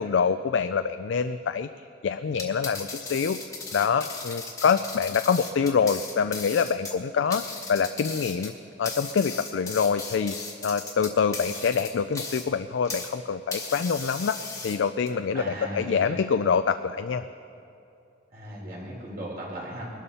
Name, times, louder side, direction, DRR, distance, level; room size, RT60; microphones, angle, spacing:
voice 1, 0.0-1.7 2.0-3.4 3.7-7.4 7.7-8.5 8.8-10.4 10.6-14.4 14.6-17.2, left 6 dB, 90° left, 10 dB, 0.4 m, -25 dB
sound 1, 2.3-13.2 13.5-15.1, left 4 dB, 15° left, 1.3 m, -37 dB
voice 2, 15.3-16.2 18.3-19.9, right 1 dB, 50° right, -4 dB, 4.0 m, -37 dB
21.0 x 12.5 x 4.2 m, 2.7 s
head